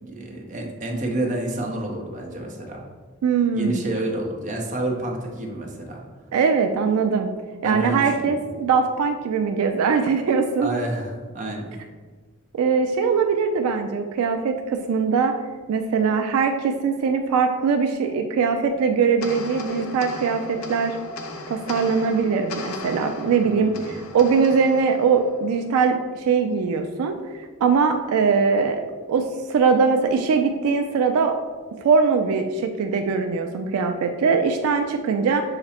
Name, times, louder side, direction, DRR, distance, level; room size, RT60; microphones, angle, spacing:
voice 1, 0.0-2.8 3.5-6.0 7.6-8.5 10.6-11.8 23.4-24.0, right 1 dB, 35° right, 0 dB, 0.7 m, -29 dB
voice 2, 3.2-3.9 6.3-7.3 7.6-10.7 12.6-15.3 15.7-21.0 21.5-28.8 29.1-31.3 31.8-35.4, right 5 dB, 80° right, 6 dB, 0.3 m, -21 dB
sound 1, 19.2-25.8, left 3 dB, 70° left, 0.4 m, -37 dB
5.7 x 2.0 x 4.2 m, 1.4 s
head